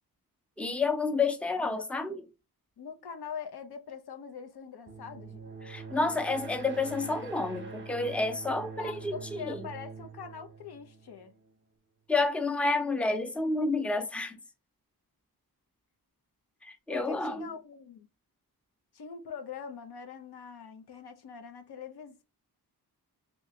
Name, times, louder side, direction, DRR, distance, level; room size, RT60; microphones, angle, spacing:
voice 1, 0.6-2.1 5.6-9.7 12.1-14.4 16.6-17.5, left 3 dB, 5° left, 0.5 m, -30 dB
voice 2, 1.7-2.1 2.8-5.4 8.8-11.3 16.9-18.1 18.9-22.2, left 6 dB, 90° left, 0.7 m, -43 dB
sound 1, 4.9-11.5, right 5 dB, 30° right, 0.8 m, -44 dB
3.2 x 2.8 x 2.7 m
wide cardioid pair, 120°, 38 cm